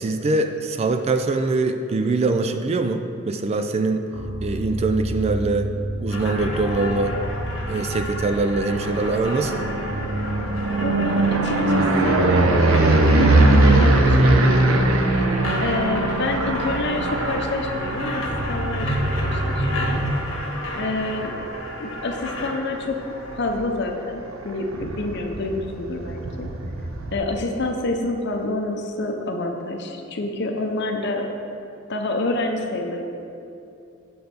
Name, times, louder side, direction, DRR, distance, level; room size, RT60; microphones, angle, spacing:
voice 1, 0.0-4.1 4.4-5.7 6.0-7.2 7.7-9.7, right 3 dB, 30° right, 7 dB, 0.3 m, -23 dB
sound 1, 4.1-19.9, equal, 5° left, 1.1 m, -32 dB
sound 2, 6.1-23.5, left 1 dB, 80° left, 1.2 m, -31 dB
sound 3, 8.5-22.5 23.0-23.5 23.7-23.8 24.1-24.2 24.4-27.2, right 2 dB, 90° right, 0.7 m, -21 dB
voice 2, 10.8-14.8 15.6-20.0 20.8-21.4 21.8-23.0 23.3-26.5 27.1-31.3 31.9-33.0, left 2 dB, 55° left, 3 dB, 0.7 m, -28 dB
8.0 x 3.9 x 6.7 m, 2.7 s
head